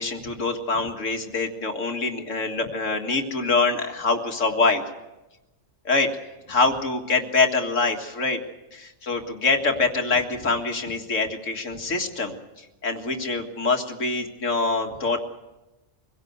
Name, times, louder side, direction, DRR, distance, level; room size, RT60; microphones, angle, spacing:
voice 1, 0.0-4.8 5.8-6.1 6.5-8.4 8.7-12.3 12.8-15.2, left 3 dB, 85° left, 3 dB, 2.3 m, -24 dB
24.0 x 17.0 x 8.0 m, 1.0 s
omnidirectional pair, 1.3 m